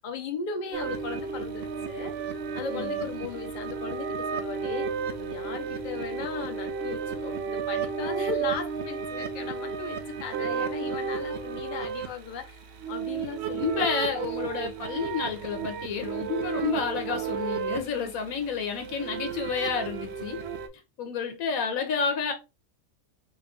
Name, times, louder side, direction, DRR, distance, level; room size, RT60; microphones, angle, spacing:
voice 1, 0.0-2.1 2.5-4.9 5.2-12.6 12.9-13.9, left 5 dB, 45° left, 0.7 m, -37 dB
sound 1, 0.7-20.7, right 6 dB, 65° right, 0.7 m, -33 dB
voice 2, 13.5-20.4 21.0-22.3, left 6 dB, 85° left, 1.2 m, -30 dB
4.0 x 2.4 x 3.6 m
omnidirectional pair, 1.4 m